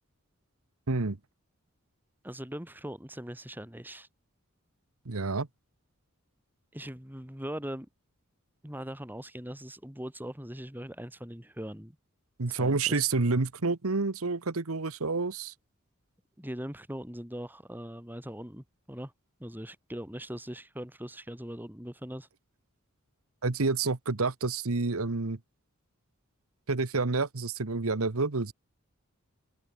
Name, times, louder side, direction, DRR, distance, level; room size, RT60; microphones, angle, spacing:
voice 1, 2.2-4.1 6.7-7.9 8.6-11.9 12.6-13.1 16.4-19.1 19.4-22.3, equal, 10° right, 3.2 m, -40 dB
voice 2, 5.0-5.5 12.4-15.5 23.4-25.4 26.7-28.5, right 3 dB, 75° right, 1.2 m, -29 dB
open air
head